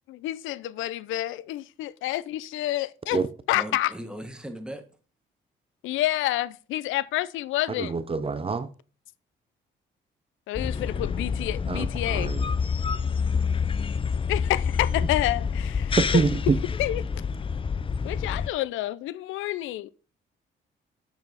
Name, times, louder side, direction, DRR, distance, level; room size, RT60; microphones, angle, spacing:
voice 1, 0.1-3.2 3.5-3.9 5.8-7.9 10.5-12.3 14.3-16.2 16.8-17.0 18.0-19.9, left 15 dB, 90° left, 0.5 m, -28 dB
voice 2, 3.5-4.8, right 1 dB, 5° right, 1.4 m, -38 dB
voice 3, 7.7-8.7 11.7-12.5 16.0-16.6, right 5 dB, 30° right, 0.7 m, -26 dB
sound 1, 10.5-18.5, left 6 dB, 25° left, 0.5 m, -28 dB
7.6 x 7.0 x 4.0 m
cardioid pair, 90°, 20 cm